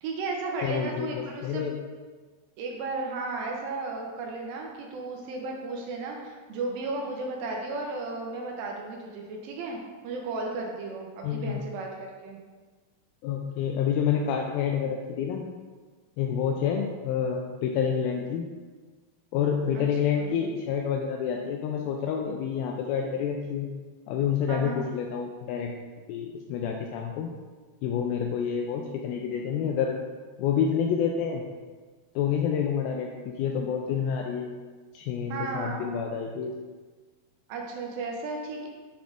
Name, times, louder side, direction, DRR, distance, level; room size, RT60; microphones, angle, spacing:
voice 1, 0.0-1.6 2.6-11.9 12.2-12.4 19.8-19.9 24.5-24.9 35.3-35.8 37.5-38.7, right 3 dB, 80° right, 0 dB, 2.3 m, -34 dB
voice 2, 0.6-1.8 11.2-11.6 13.2-15.5 16.2-18.5 19.3-23.7 24.1-25.7 26.1-27.4 27.8-30.0 30.4-31.5 32.2-34.5 34.9-36.5, left 7 dB, 80° left, 1 dB, 2.2 m, -28 dB
7.1 x 4.0 x 3.8 m, 1.4 s
omnidirectional pair, 4.6 m